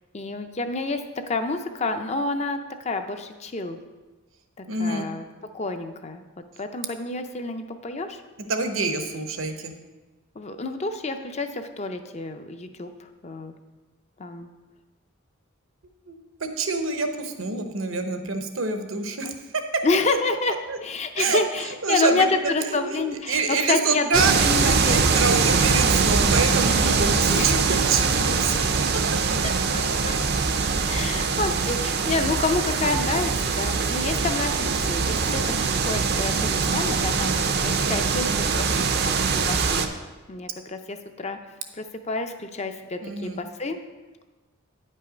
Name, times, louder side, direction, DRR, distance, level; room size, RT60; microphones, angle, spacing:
voice 1, 0.1-1.0 1.3-3.8 4.6-5.2 5.5-6.2 6.6-8.2 10.4-13.5 14.2-14.5 19.2-19.3 19.8-20.5 20.8-25.3 26.8-27.6 29.4-30.2 30.8-35.4 35.8-39.8 40.3-41.4 41.7-43.8, left 3 dB, 30° left, 8 dB, 0.5 m, -29 dB
voice 2, 4.7-5.1 8.5-9.7 16.1-19.6 20.7-20.8 21.2-29.0 43.0-43.4, right 4 dB, 70° right, 6 dB, 0.9 m, -27 dB
sound 1, 24.1-39.9, right 5 dB, 50° right, 0.6 m, -23 dB
9.7 x 5.5 x 5.0 m, 1.2 s
head